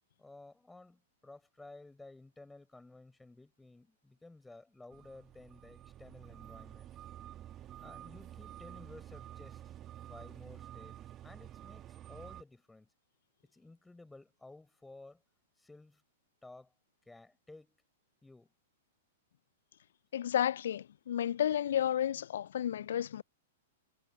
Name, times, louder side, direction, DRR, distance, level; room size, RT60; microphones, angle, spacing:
voice 1, 0.2-6.9 7.8-9.7 10.1-11.0 11.2-12.9 13.4-15.2 15.6-16.0 16.4-16.7 17.1-17.8 18.2-18.5, left 2 dB, 5° left, 4.8 m, -54 dB
sound 1, 4.9-12.4, right 12 dB, 30° right, 1.7 m, -50 dB
voice 2, 20.1-23.2, left 10 dB, 65° left, 0.5 m, -32 dB
figure-of-eight pair, 105°, 0 cm